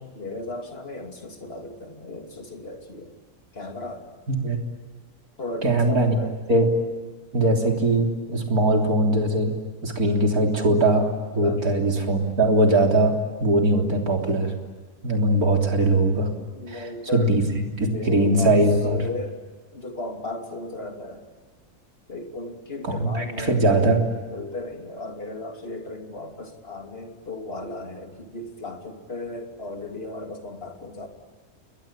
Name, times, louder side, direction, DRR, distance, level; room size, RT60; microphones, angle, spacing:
voice 1, 0.1-3.1 3.5-4.1 5.4-6.4 11.3-11.8 16.5-17.3 17.8-18.6 18.9-19.4 19.7-21.3 22.1-23.8 24.3-31.1, left 2 dB, 40° left, 3 dB, 3.0 m, -35 dB
voice 2, 4.3-4.6 5.6-6.2 6.5-6.7 7.3-9.5 9.8-11.1 11.3-14.5 15.0-16.3 16.7-16.8 17.1-17.4 17.8-19.0 22.8-24.0, right 1 dB, 70° right, 2 dB, 3.9 m, -21 dB
30.0 x 22.0 x 8.9 m, 1.4 s
omnidirectional pair, 1.6 m